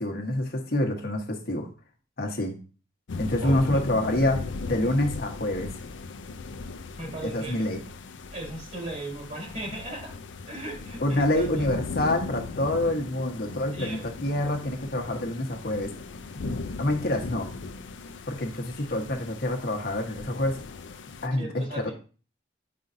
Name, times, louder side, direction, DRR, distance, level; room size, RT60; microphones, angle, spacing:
voice 1, 0.0-1.7 2.2-2.6 3.2-5.7 7.2-7.8 11.0-15.9 16.3-16.4 16.8-17.5 18.3-20.6 21.2-21.9, left 1 dB, 55° left, 3 dB, 1.3 m, -27 dB
sound 1, 3.1-21.3, left 3 dB, 85° left, 0.5 m, -38 dB
voice 2, 3.4-3.8 7.0-7.7 8.3-10.1 10.5-11.7 13.7-14.0 21.3-21.9, right 2 dB, 45° right, -2 dB, 3.5 m, -37 dB
8.6 x 5.5 x 2.7 m, 0.36 s
head